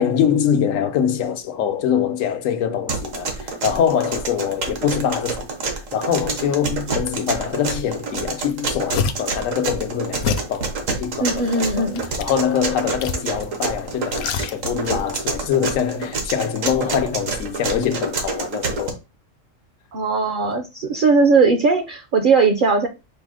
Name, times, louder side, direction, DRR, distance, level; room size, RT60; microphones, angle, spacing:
voice 1, 0.0-19.0, left 8 dB, 80° left, 1.1 m, -24 dB
sound 1, 2.9-18.9, right 4 dB, 85° right, 1.3 m, -27 dB
sound 2, 8.1-8.2 8.4-9.4 10.2-10.6 11.2-12.4 13.0-13.6 13.8-15.0 15.3-15.4, left 5 dB, 65° left, 0.7 m, -27 dB
voice 2, 11.2-12.0 19.9-22.9, right 4 dB, 60° right, 0.5 m, -18 dB
5.1 x 2.0 x 4.8 m
omnidirectional pair, 1.3 m